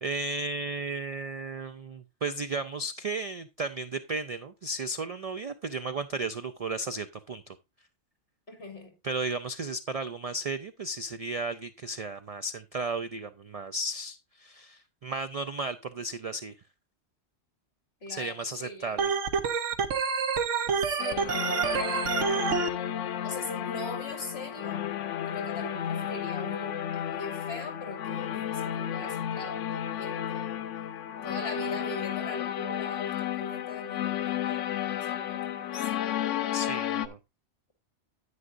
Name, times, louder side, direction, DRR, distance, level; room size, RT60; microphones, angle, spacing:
voice 1, 0.0-7.6 9.0-16.5 18.1-19.1 36.5-37.2, right 2 dB, 65° right, 0.3 m, -34 dB
voice 2, 8.5-9.0 18.0-19.1 20.7-22.7 23.2-24.8 25.3-30.7 31.2-36.0, left 1 dB, 60° left, 2.3 m, -41 dB
Organ, 19.0-22.7, right 5 dB, 90° right, 1.2 m, -27 dB
sound 1, 21.0-37.1, left 10 dB, 90° left, 1.0 m, -33 dB
9.7 x 9.2 x 2.5 m
omnidirectional pair, 1.2 m